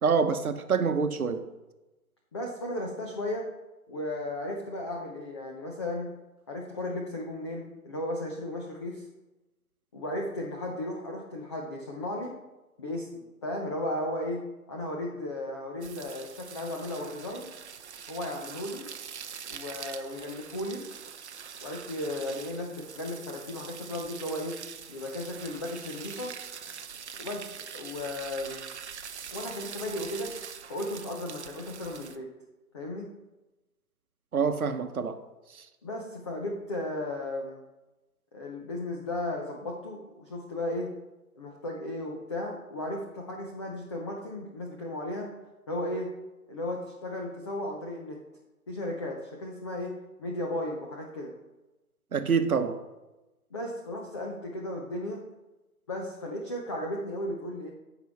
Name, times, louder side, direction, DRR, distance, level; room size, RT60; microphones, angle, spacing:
voice 1, 0.0-1.5 34.3-35.2 35.5-35.6 52.1-52.8, right 5 dB, 70° right, 1.0 m, -26 dB
voice 2, 2.3-3.5 3.9-6.2 6.5-9.1 9.9-12.3 12.8-17.5 18.1-18.9 19.5-20.9 21.6-24.6 24.9-26.3 27.2-28.7 29.3-30.3 30.7-32.3 32.7-33.1 35.8-37.6 38.3-40.9 41.4-45.3 45.7-46.1 46.5-48.2 48.7-51.3 53.5-55.2 55.9-57.7, left 1 dB, 20° left, 0.6 m, -35 dB
sound 1, 15.8-32.2, right 7 dB, 50° right, 0.7 m, -43 dB
14.5 x 5.4 x 3.5 m
figure-of-eight pair, 145°, 45 cm